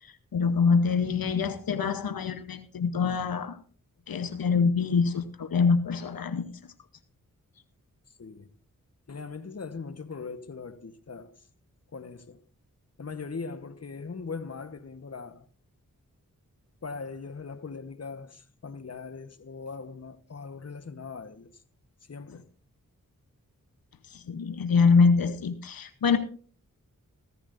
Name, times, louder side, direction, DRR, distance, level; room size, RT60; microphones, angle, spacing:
voice 1, 0.3-3.6 4.1-6.5 24.1-26.2, left 5 dB, 85° left, 0.9 m, -24 dB
voice 2, 8.2-8.5 9.1-11.4 11.9-12.4 13.0-15.5 16.8-21.5 22.1-22.5, left 4 dB, 45° left, 1.2 m, -40 dB
15.5 x 14.0 x 2.6 m
cardioid pair, 40°, 34 cm